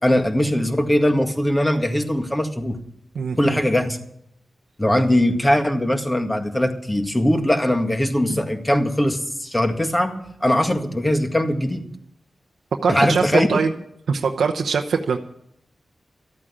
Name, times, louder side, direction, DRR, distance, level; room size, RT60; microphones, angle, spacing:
voice 1, 0.0-2.8 3.4-4.0 4.8-11.9 12.9-13.6, left 1 dB, 20° left, 5 dB, 1.9 m, -20 dB
voice 2, 3.1-3.6 12.8-13.7 14.1-15.2, right 5 dB, 85° right, 4 dB, 0.8 m, -22 dB
13.5 x 8.8 x 8.5 m, 0.75 s
cardioid pair, 55°, 0 cm